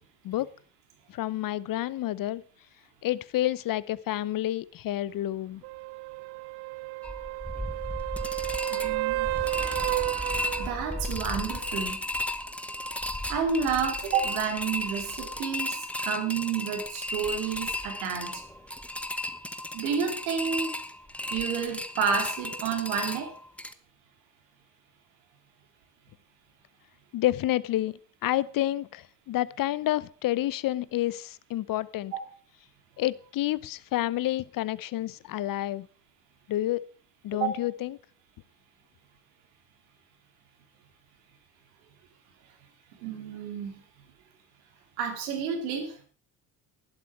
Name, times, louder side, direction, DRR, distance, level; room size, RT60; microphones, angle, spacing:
voice 1, 1.1-2.4 3.0-5.6 27.1-32.1 33.0-35.9 36.5-36.8 37.2-38.0, left 14 dB, 50° left, 20 dB, 0.8 m, -29 dB
sound 1, 5.6-11.3 15.4-15.5, right 20 dB, 65° right, 0.6 m, -32 dB
sound 2, 7.0-23.7, left 1 dB, 5° left, 1.1 m, -34 dB
voice 2, 8.7-9.3 10.6-12.0 13.3-18.4 19.7-20.8 21.3-23.3 37.3-37.6 43.0-43.7 45.0-45.9, right 6 dB, 80° right, 4 dB, 2.8 m, -30 dB
12.0 x 11.0 x 4.7 m, 0.43 s
hypercardioid pair, 60°, 42 cm